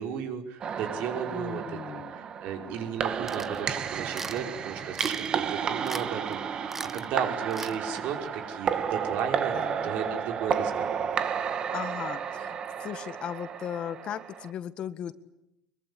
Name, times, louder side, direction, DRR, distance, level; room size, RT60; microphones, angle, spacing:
voice 1, 0.0-11.0, right 7 dB, 60° right, 5 dB, 5.4 m, -35 dB
sound 1, 0.6-14.5, right 7 dB, 35° right, 1.8 m, -32 dB
voice 2, 1.3-2.2 9.5-9.9 11.7-15.1, left 9 dB, 40° left, 12 dB, 1.6 m, -37 dB
sound 2, 3.3-3.6 4.1-4.4 4.9-5.4 5.8-6.1 6.3-6.4 6.7-7.0 7.5-7.8, right 3 dB, 10° right, 1.1 m, -38 dB
24.0 x 23.0 x 10.0 m, 0.82 s
cardioid pair, 140°, 2 cm